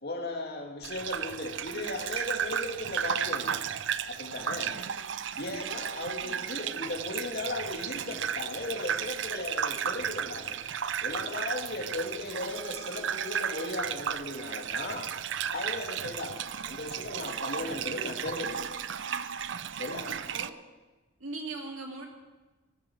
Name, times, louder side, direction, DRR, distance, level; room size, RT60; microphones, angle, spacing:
voice 1, 0.0-3.6 4.1-4.7 5.4-10.6 11.0-15.1 15.5-18.8 19.8-20.1, left 2 dB, 50° left, 1 dB, 2.7 m, -36 dB
Gurgling / Bathtub (filling or washing), 0.8-20.5, right 8 dB, 60° right, 0.5 m, -34 dB
voice 2, 4.6-5.1 6.2-6.4 11.8-12.0 17.6-18.0 20.1-20.5 21.2-22.1, right 3 dB, 80° right, 1 dB, 3.0 m, -42 dB
17.0 x 13.0 x 6.4 m, 1.2 s
head